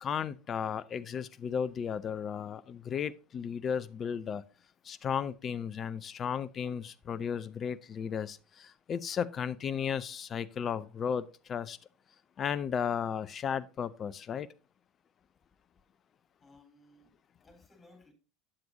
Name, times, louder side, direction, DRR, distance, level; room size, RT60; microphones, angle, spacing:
voice 1, 0.0-4.4 4.8-11.8 12.4-14.5, left 7 dB, 35° left, 0.5 m, -34 dB
voice 2, 16.4-18.1, left 2 dB, 20° left, 3.8 m, -60 dB
8.7 x 7.6 x 2.7 m
hypercardioid pair, 75°, 0 cm